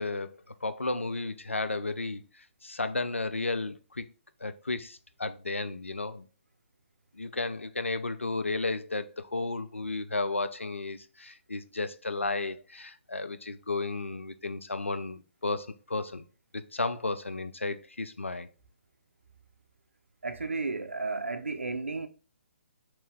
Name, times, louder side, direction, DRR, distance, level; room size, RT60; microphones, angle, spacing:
voice 1, 0.0-4.0 4.4-6.3 7.1-16.3 16.5-18.5, left 3 dB, 85° left, 0.4 m, -33 dB
voice 2, 20.2-22.1, right 3 dB, 80° right, 0.5 m, -33 dB
3.0 x 2.8 x 3.4 m
figure-of-eight pair, 135°, 7 cm